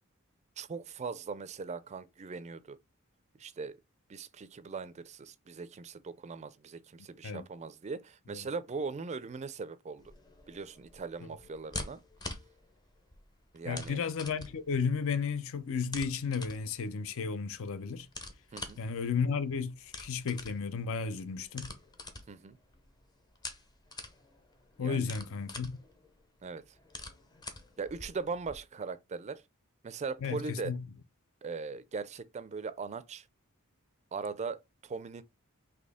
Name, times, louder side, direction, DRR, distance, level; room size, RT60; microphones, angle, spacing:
voice 1, 0.6-2.8 3.4-3.8 4.1-10.1 10.5-12.0 13.5-14.0 18.5-18.8 22.3-22.6 24.8-25.1 26.4-26.6 27.8-29.4 29.8-30.7 31.4-33.3 34.1-35.2, right 4 dB, 30° right, 0.4 m, -40 dB
sound 1, 10.0-28.6, left 2 dB, 20° left, 0.6 m, -47 dB
voice 2, 13.6-18.1 18.8-21.7 24.8-25.7 30.2-30.8, left 5 dB, 65° left, 0.5 m, -33 dB
4.2 x 2.8 x 3.4 m
head